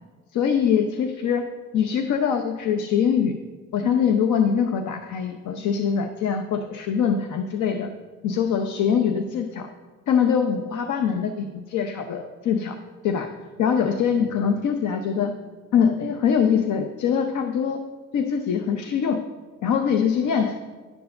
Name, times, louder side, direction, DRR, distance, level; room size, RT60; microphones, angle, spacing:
voice 1, 0.3-1.5 1.7-3.4 3.7-7.9 8.2-9.7 10.1-12.8 13.0-13.3 13.6-15.4 15.7-17.8 18.1-19.3 19.6-20.6, left 7 dB, 75° left, 5 dB, 0.7 m, -23 dB
10.5 x 4.7 x 6.5 m, 1.5 s
cardioid pair, 90°, 30 cm